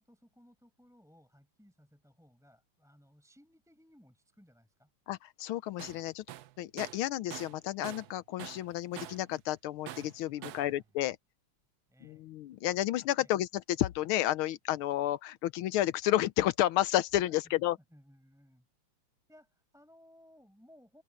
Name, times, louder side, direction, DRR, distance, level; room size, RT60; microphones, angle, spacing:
voice 1, 0.0-4.9 10.3-10.9 11.9-12.3 13.2-13.3 17.3-17.5 17.9-18.7 19.3-21.0, equal, ahead, 5.7 m, -61 dB
voice 2, 5.1-6.2 6.6-11.2 12.0-17.8, left 14 dB, 80° left, 1.5 m, -31 dB
Tools, 5.8-6.0 6.3-8.1 8.4-9.3 9.9-10.7, right 12 dB, 85° right, 0.8 m, -45 dB
open air
omnidirectional pair, 2.4 m